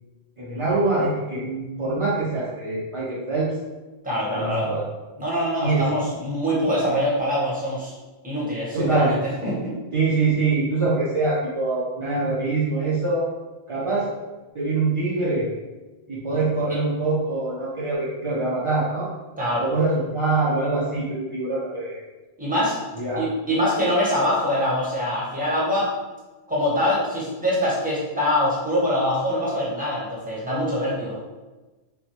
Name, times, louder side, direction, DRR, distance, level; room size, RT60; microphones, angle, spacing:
voice 1, 0.4-3.6 4.3-4.8 5.6-6.1 8.7-9.1 9.9-13.3 13.7-14.1 14.5-15.5 16.1-19.1 19.6-22.0 23.0-23.2, right 3 dB, 55° right, -8 dB, 0.3 m, -24 dB
voice 2, 4.0-4.7 5.2-7.9 8.2-9.7 16.3-16.4 19.4-19.6 22.4-22.8 23.2-25.9 26.5-31.2, equal, 10° right, -6 dB, 0.6 m, -24 dB
3.2 x 2.0 x 2.9 m, 1.2 s
omnidirectional pair, 1.1 m